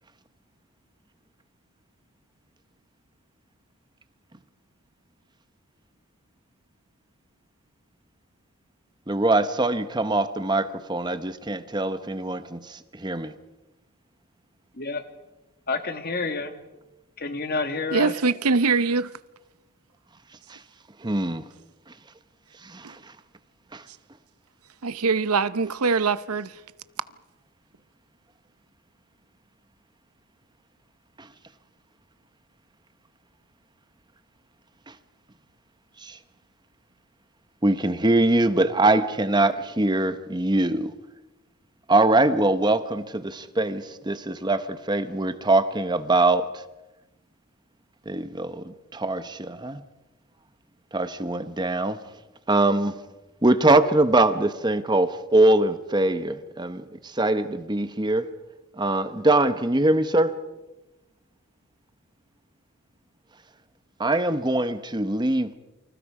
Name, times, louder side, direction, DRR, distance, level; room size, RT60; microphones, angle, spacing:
voice 1, 9.1-13.3 20.5-20.6 21.0-21.4 22.7-22.9 23.7-23.8 36.0-36.2 37.6-40.9 41.9-46.5 48.1-49.8 50.9-52.0 52.5-52.9 53.4-58.3 58.8-60.3 64.0-65.5, right 2 dB, 20° right, 0.9 m, -23 dB
voice 2, 15.7-16.5 17.2-18.1, left 3 dB, 45° left, 1.9 m, -28 dB
voice 3, 17.9-19.1 22.8-22.9 24.8-26.5, right 4 dB, 80° right, 0.8 m, -23 dB
29.0 x 25.5 x 4.9 m
head